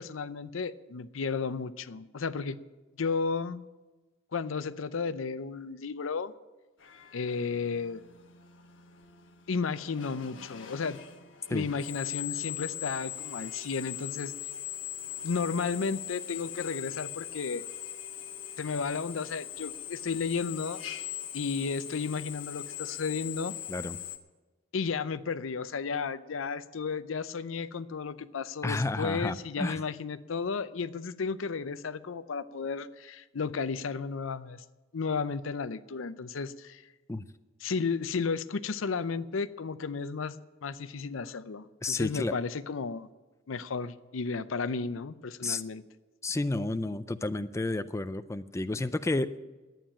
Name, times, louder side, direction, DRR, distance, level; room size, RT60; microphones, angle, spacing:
voice 1, 0.0-2.6 3.0-3.6 4.3-6.3 7.1-8.0 9.5-11.0 11.5-14.3 15.2-17.6 18.6-20.8 21.3-23.5 24.7-34.6 34.9-36.8 37.6-43.1 43.5-45.8, left 5 dB, 85° left, 14 dB, 0.6 m, -33 dB
Drill, 6.8-24.2, left 11 dB, 70° left, 1.2 m, -41 dB
voice 2, 28.6-29.8 37.1-37.2 41.8-42.3 45.4-45.6 46.2-49.4, left 2 dB, 15° left, 12 dB, 0.4 m, -31 dB
11.5 x 9.1 x 8.7 m, 1.2 s
head